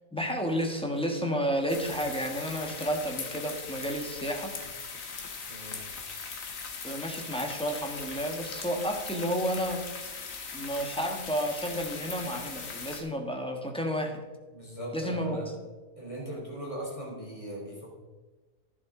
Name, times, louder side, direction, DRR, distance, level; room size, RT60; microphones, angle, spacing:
voice 1, 0.1-4.5 6.8-9.8 10.5-14.2 14.9-15.4, equal, 5° left, 2 dB, 1.4 m, -31 dB
sound 1, 1.7-13.0, left 5 dB, 65° left, 1.7 m, -40 dB
voice 2, 5.5-5.8 14.5-15.5 16.0-17.9, right 1 dB, 20° left, -3 dB, 3.5 m, -39 dB
11.5 x 11.0 x 3.8 m, 1.3 s
omnidirectional pair, 1.5 m